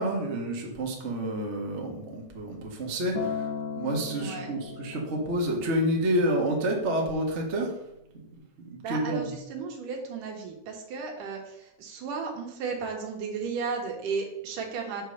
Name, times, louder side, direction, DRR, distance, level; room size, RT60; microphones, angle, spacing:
voice 1, 0.0-3.5 3.8-7.7 8.6-9.2, right 1 dB, 35° right, -1 dB, 1.2 m, -29 dB
Acoustic guitar, 3.1-7.4 8.3-8.4, left 6 dB, 65° left, 1.8 m, -38 dB
voice 2, 4.2-4.5 8.8-15.0, right 5 dB, 70° right, 2 dB, 2.9 m, -34 dB
9.0 x 4.5 x 6.6 m, 0.83 s
omnidirectional pair, 4.0 m